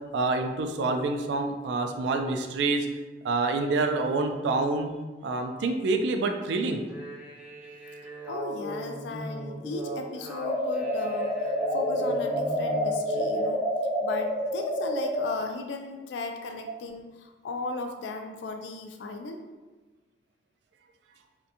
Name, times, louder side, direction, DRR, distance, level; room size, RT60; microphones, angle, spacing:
voice 1, 0.1-2.9 3.2-4.9 5.2-6.8, right 3 dB, 85° right, 5 dB, 0.3 m, -27 dB
sound 1, 6.8-13.5, right 1 dB, 10° right, 0.4 m, -38 dB
voice 2, 8.3-13.7 14.0-19.4, left 3 dB, 85° left, 5 dB, 0.3 m, -36 dB
sound 2, 10.4-15.3, equal, 65° left, 0.8 m, -28 dB
2.5 x 2.1 x 2.7 m, 1.2 s
head